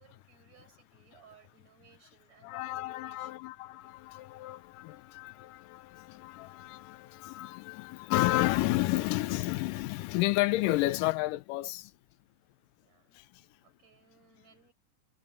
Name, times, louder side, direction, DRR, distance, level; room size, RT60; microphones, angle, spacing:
voice 1, 0.0-3.6 12.8-13.2 13.6-14.7, right 7 dB, 50° right, 6.2 m, -62 dB
voice 2, 2.4-11.9 13.1-13.4, left 18 dB, 80° left, 2.2 m, -31 dB
omnidirectional pair, 4.0 m